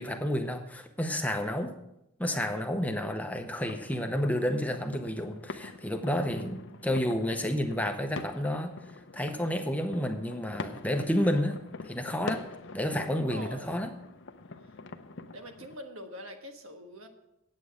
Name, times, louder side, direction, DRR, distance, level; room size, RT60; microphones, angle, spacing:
voice 1, 0.0-1.7 2.2-8.7 9.1-11.6 11.8-12.4 12.7-13.9, equal, 5° left, 5 dB, 0.7 m, -30 dB
sound 1, 3.6-15.8, left 3 dB, 60° left, 0.6 m, -44 dB
voice 2, 13.1-13.8 14.6-14.7 15.3-17.1, equal, 85° right, 5 dB, 1.5 m, -44 dB
9.1 x 8.3 x 6.4 m, 0.86 s
head